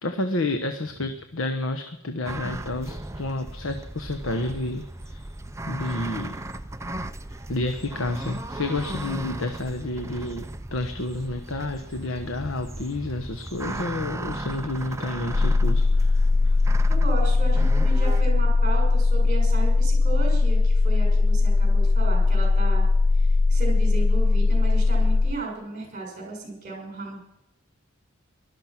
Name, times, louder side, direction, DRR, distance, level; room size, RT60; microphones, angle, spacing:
voice 1, 0.0-5.2 5.7-6.3 7.5-16.1, left 2 dB, 70° left, 7 dB, 1.1 m, -30 dB
sound 1, 2.2-18.2, right 1 dB, 15° right, 0.6 m, -36 dB
sound 2, 15.3-25.3, left 3 dB, 50° left, 0.5 m, -19 dB
voice 2, 16.9-22.9 23.2-27.2, right 4 dB, 40° right, 1 dB, 6.3 m, -34 dB
18.0 x 12.5 x 5.9 m, 0.88 s
head